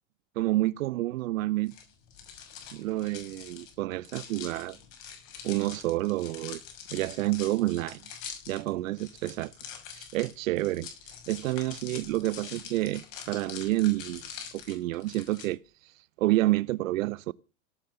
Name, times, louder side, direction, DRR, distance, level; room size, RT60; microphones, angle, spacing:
voice 1, 0.4-1.7 2.7-4.8 5.4-6.6 6.9-8.0 8.5-9.5 9.9-10.9 11.3-14.3 14.5-15.9 16.2-17.3, right 17 dB, 80° right, 0.6 m, -29 dB
sound 1, 1.7-15.5, left 7 dB, 55° left, 6.3 m, -45 dB
17.5 x 7.5 x 6.7 m
hypercardioid pair, 115°, 39 cm